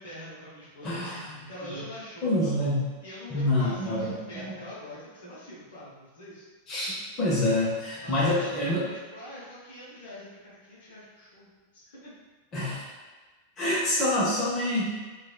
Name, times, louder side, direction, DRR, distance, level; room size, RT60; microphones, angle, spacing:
voice 1, 0.0-2.4 3.0-6.4 8.0-12.2, left 1 dB, 60° left, -7 dB, 0.8 m, -44 dB
voice 2, 0.8-1.3 1.6-1.8 2.2-2.9 3.3-4.5 6.7-8.8 12.5-12.9 13.6-14.9, left 1 dB, 30° left, -7 dB, 0.8 m, -27 dB
3.0 x 2.3 x 2.2 m, 1.3 s
figure-of-eight pair, 90°, 0 cm